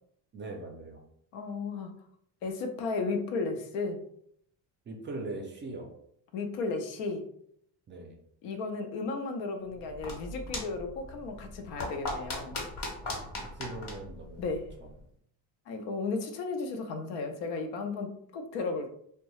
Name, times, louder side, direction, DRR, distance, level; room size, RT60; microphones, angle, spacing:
voice 1, 0.3-1.0 4.9-5.9 7.9-8.2 12.9-14.5 14.8-14.9, right 2 dB, 30° right, 2 dB, 0.4 m, -41 dB
voice 2, 1.3-1.9 2.4-4.0 6.3-7.3 8.4-12.6 14.4-14.7 15.7-18.9, left 3 dB, 85° left, 5 dB, 0.6 m, -34 dB
sound 1, 9.7-15.0, left 2 dB, 70° left, 1.2 m, -39 dB
2.6 x 2.2 x 3.0 m, 0.69 s
cardioid pair, 135°, 43 cm